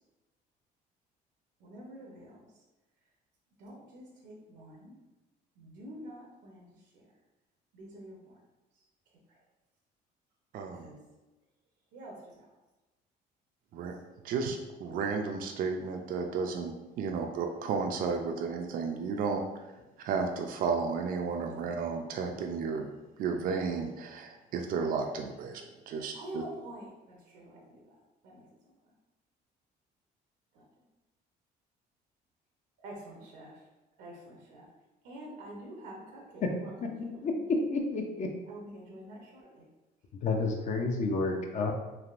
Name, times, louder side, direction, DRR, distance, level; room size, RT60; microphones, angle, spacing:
voice 1, 1.6-2.4 3.6-5.0 5.6-6.7 6.9-7.0 7.7-8.4 10.8-11.0 11.9-12.5 26.1-28.0 28.2-28.4 30.5-30.7 32.8-33.6 34.0-34.6 35.0-36.7 38.5-39.7, right 1 dB, 85° right, -2 dB, 0.7 m, -47 dB
voice 2, 10.5-10.9 13.7-13.9 14.2-19.4 20.0-22.9 23.2-26.4, right 5 dB, 55° right, 4 dB, 0.4 m, -33 dB
voice 3, 36.8-37.3 37.7-38.3 40.2-41.7, left 3 dB, 45° left, 2 dB, 0.4 m, -31 dB
3.3 x 2.5 x 2.4 m, 1.1 s
cardioid pair, 110°, 17 cm